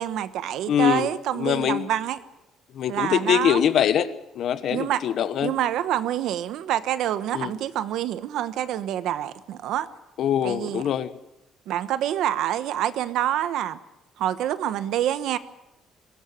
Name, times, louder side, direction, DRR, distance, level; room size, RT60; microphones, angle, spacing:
voice 1, 0.0-2.2 2.9-3.6 4.7-5.0 5.4-9.9 10.4-10.8 11.7-13.8 14.2-15.4, right 11 dB, 75° right, 13 dB, 1.1 m, -27 dB
voice 2, 0.7-1.1 1.3-1.9 2.7-5.5 7.3-7.5 10.2-11.2, left 9 dB, 60° left, 13 dB, 1.2 m, -23 dB
22.0 x 18.5 x 7.6 m, 0.91 s
cardioid pair, 145°, 0 cm